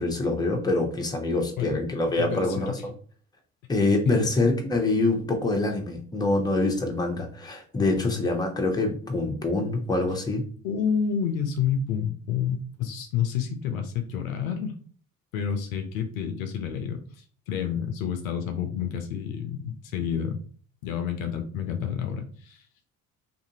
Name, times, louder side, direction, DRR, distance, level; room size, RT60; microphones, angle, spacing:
voice 1, 0.0-2.7 3.7-10.4, left 2 dB, 10° left, 2 dB, 0.7 m, -25 dB
voice 2, 2.2-2.8 4.1-4.3 7.8-8.3 10.6-14.7 15.3-17.0 17.5-20.4 20.8-22.6, left 7 dB, 75° left, 6 dB, 0.6 m, -29 dB
2.7 x 2.5 x 2.7 m, 0.43 s
figure-of-eight pair, 55°, 42 cm